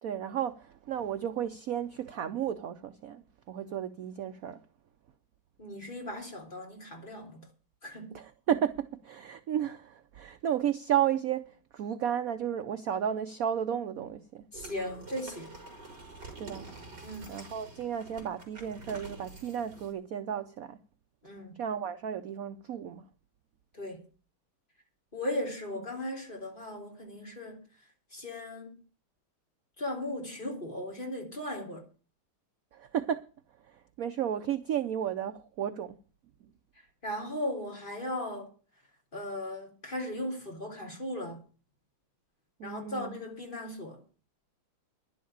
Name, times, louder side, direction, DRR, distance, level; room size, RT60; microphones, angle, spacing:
voice 1, 0.0-4.6 8.1-11.4 11.7-14.4 16.4-16.7 17.3-20.8 21.6-23.0 32.7-33.2 33.7-36.0 42.6-43.2, right 9 dB, 70° right, 0.8 m, -33 dB
voice 2, 5.6-7.5 7.8-8.2 14.5-15.5 17.0-17.3 21.2-21.6 23.7-24.0 25.1-27.6 28.1-28.8 29.8-31.8 37.0-38.5 39.1-41.4 42.6-44.0, left 1 dB, 25° left, 3.2 m, -37 dB
sound 1, 14.5-19.9, right 3 dB, 50° right, 4.8 m, -47 dB
11.0 x 7.5 x 8.6 m
omnidirectional pair, 2.3 m